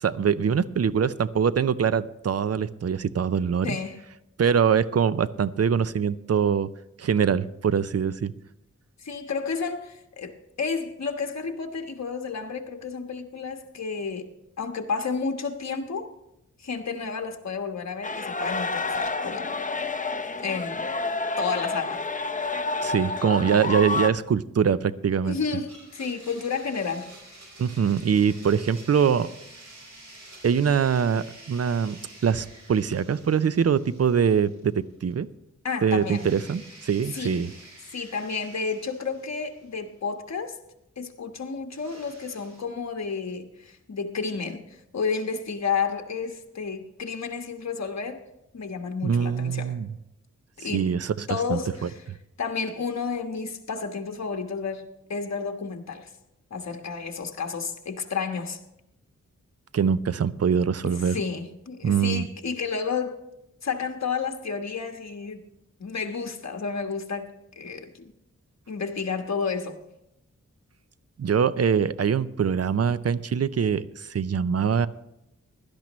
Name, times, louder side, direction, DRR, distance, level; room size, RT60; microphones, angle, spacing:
voice 1, 0.0-3.7 4.4-6.7 7.0-8.3 22.8-25.4 27.6-29.3 30.4-35.3 35.8-37.5 49.0-49.9 50.7-51.9 59.7-61.2 61.8-62.2 71.2-74.9, right 7 dB, 55° right, 0.6 m, -23 dB
voice 2, 3.6-4.0 9.0-14.3 14.6-16.1 16.6-19.6 20.4-20.9 21.4-22.0 25.2-27.1 35.6-36.3 37.1-37.4 37.9-40.6 41.0-48.2 48.5-49.7 50.6-50.9 51.3-52.0 52.4-54.8 55.1-56.1 56.5-58.6 60.8-63.2 63.6-65.4 65.8-68.1 68.7-69.8, left 5 dB, 60° left, 1.3 m, -31 dB
sound 1, 18.0-24.1, left 3 dB, 25° left, 0.6 m, -29 dB
Domestic sounds home sounds, 25.7-34.8 35.1-35.2 36.0-39.9 41.7-42.6, right 2 dB, 80° right, 4.4 m, -49 dB
16.5 x 12.0 x 3.1 m
wide cardioid pair, 75°, 30 cm